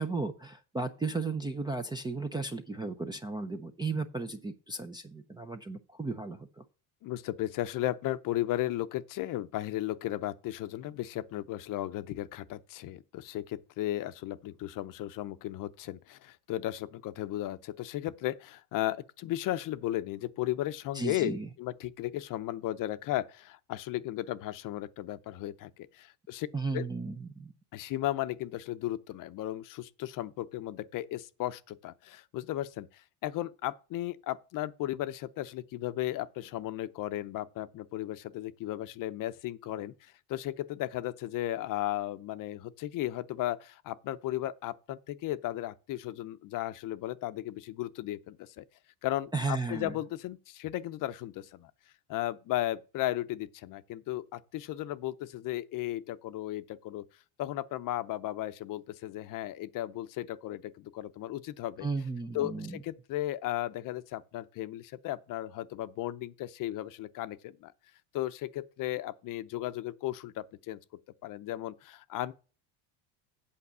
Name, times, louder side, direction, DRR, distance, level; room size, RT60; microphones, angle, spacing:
voice 1, 0.0-6.6 20.9-21.5 26.5-27.5 49.3-49.9 61.8-62.8, right 3 dB, 10° right, 0.4 m, -35 dB
voice 2, 7.0-26.5 26.7-26.9 27.7-48.6 49.0-51.7 52.1-57.0 57.4-61.9 62.3-67.7 68.1-70.8 71.2-72.3, left 14 dB, 45° left, 0.7 m, -35 dB
8.6 x 5.2 x 6.7 m
cardioid pair, 130°, 45 cm